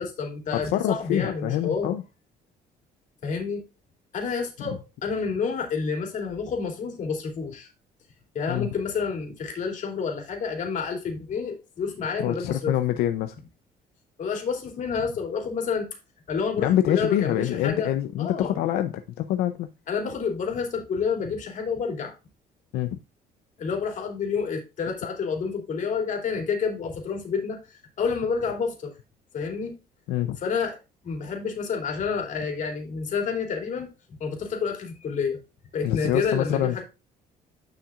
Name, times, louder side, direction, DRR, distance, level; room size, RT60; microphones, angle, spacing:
voice 1, 0.0-1.9 3.2-3.6 4.1-7.7 8.3-12.7 14.2-15.9 16.3-17.9 18.2-18.6 19.9-22.1 23.6-27.6 28.0-28.9 29.3-29.7 30.4-30.8 31.0-33.9 34.2-35.4 35.7-36.8, left 5 dB, 55° left, 2 dB, 2.9 m, -29 dB
voice 2, 0.6-2.0 8.5-8.7 12.2-13.4 16.6-19.7 22.7-23.0 30.1-30.4 35.8-36.8, left 12 dB, 85° left, 9 dB, 0.6 m, -25 dB
10.0 x 5.9 x 2.5 m, 0.28 s
cardioid pair, 125°, 16 cm